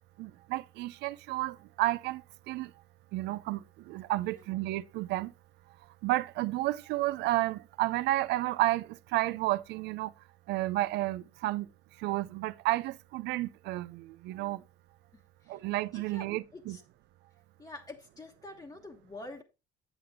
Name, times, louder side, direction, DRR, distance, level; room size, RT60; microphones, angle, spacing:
voice 1, 0.2-2.7 3.1-5.3 6.0-10.1 10.5-11.7 12.0-14.6 15.5-16.8, right 17 dB, 85° right, 0.5 m, -31 dB
voice 2, 15.1-15.6 15.9-16.8 17.6-19.4, left 2 dB, 20° left, 1.2 m, -47 dB
8.1 x 7.8 x 3.6 m
cardioid pair, 110°, 17 cm